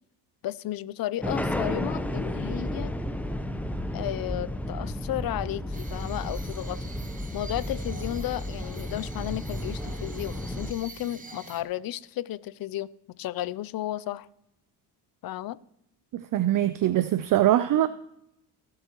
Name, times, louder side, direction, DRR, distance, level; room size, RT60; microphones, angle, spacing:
voice 1, 0.4-2.9 3.9-6.8 7.3-12.9 13.2-14.3 15.2-15.6 17.7-17.9, left 14 dB, 60° left, 0.6 m, -33 dB
sound 1, 1.2-10.7, left 1 dB, 5° left, 0.7 m, -32 dB
sound 2, 5.7-11.6, right 3 dB, 20° right, 1.3 m, -46 dB
voice 2, 16.1-17.9, right 13 dB, 50° right, 0.5 m, -23 dB
22.0 x 7.8 x 3.0 m
cardioid pair, 100°, 41 cm